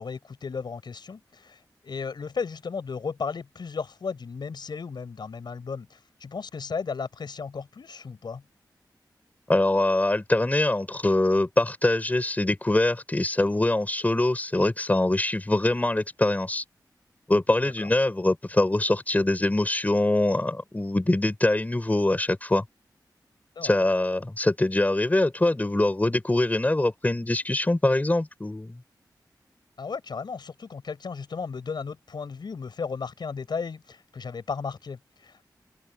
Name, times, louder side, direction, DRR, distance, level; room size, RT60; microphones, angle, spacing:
voice 1, 0.0-8.4 17.6-17.9 23.6-23.8 29.8-35.4, left 5 dB, 75° left, 5.7 m, -35 dB
voice 2, 9.5-16.6 17.3-22.6 23.6-28.8, left 2 dB, 20° left, 5.3 m, -23 dB
wide cardioid pair, 90°, 8 cm